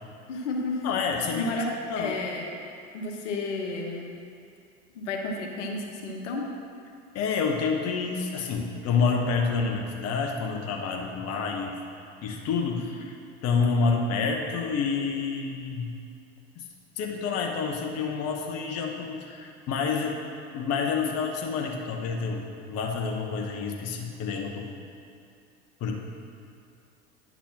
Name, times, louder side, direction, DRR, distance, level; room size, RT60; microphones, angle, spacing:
voice 1, 0.3-0.8 1.3-2.6 2.9-4.2 4.9-6.5, left 2 dB, 80° left, 1 dB, 1.2 m, -32 dB
voice 2, 0.8-1.5 1.9-2.2 7.1-11.8 12.2-13.1 13.4-15.9 16.6-16.7 17.0-20.2 20.5-24.7 25.8-26.0, left 5 dB, 45° left, 1 dB, 1.0 m, -28 dB
10.0 x 4.1 x 5.9 m, 2.4 s
hypercardioid pair, 90°, 36 cm